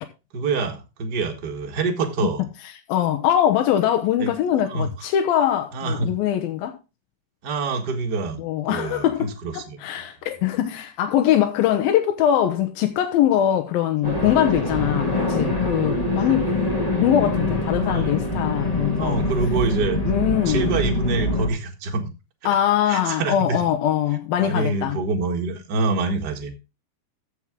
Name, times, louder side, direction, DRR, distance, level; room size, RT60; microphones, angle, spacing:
voice 1, 0.3-2.5 4.2-4.3 4.7-4.9 5.7-6.2 7.4-8.4 8.7-9.0 9.4-9.8 17.8-18.1 19.0-20.0 20.4-22.1 22.9-23.6 24.4-26.5, right 4 dB, 45° right, 1.3 m, -26 dB
voice 2, 2.9-6.8 8.4-16.6 17.0-19.2 20.1-20.7 22.5-25.0, left 11 dB, 80° left, 2.7 m, -22 dB
sound 1, 14.0-21.5, left 2 dB, 45° left, 0.4 m, -24 dB
14.0 x 6.2 x 3.7 m
omnidirectional pair, 4.2 m